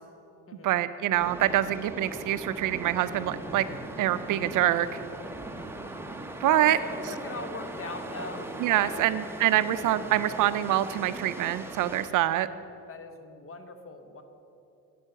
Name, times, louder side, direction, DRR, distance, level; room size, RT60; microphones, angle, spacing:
voice 1, 0.6-3.7 4.0-4.9 6.4-6.8 8.6-12.5, right 13 dB, 55° right, 13 dB, 0.5 m, -25 dB
sound 1, 1.2-12.1, right 1 dB, 5° right, 0.8 m, -39 dB
voice 2, 6.4-9.2 12.9-14.2, left 3 dB, 35° left, 8 dB, 1.0 m, -40 dB
8.4 x 6.3 x 7.8 m, 2.8 s
cardioid pair, 95°, 37 cm